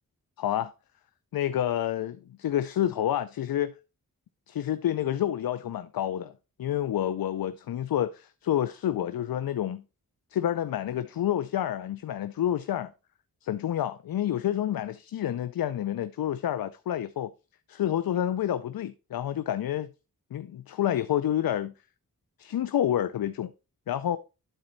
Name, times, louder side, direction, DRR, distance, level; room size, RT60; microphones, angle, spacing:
voice 1, 0.4-0.7 1.3-3.7 4.5-6.3 6.6-9.8 10.3-12.9 13.4-17.3 17.7-19.9 20.3-21.7 22.4-23.5 23.9-24.2, left 11 dB, 75° left, 0.6 m, -29 dB
12.0 x 4.3 x 4.0 m
cardioid pair, 70°, 36 cm